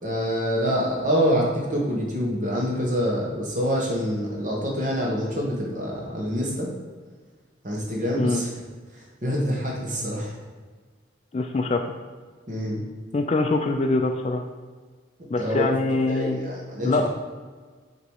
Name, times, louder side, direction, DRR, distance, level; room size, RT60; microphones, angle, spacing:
voice 1, 0.0-6.7 7.6-8.5 8.9-10.3 12.5-12.8 15.4-15.6 16.1-17.1, equal, 40° right, -2 dB, 1.2 m, -26 dB
voice 2, 11.3-11.9 13.1-14.4 15.3-16.4 16.8-17.1, left 2 dB, 35° left, 4 dB, 0.3 m, -23 dB
6.7 x 3.0 x 4.7 m, 1.5 s
head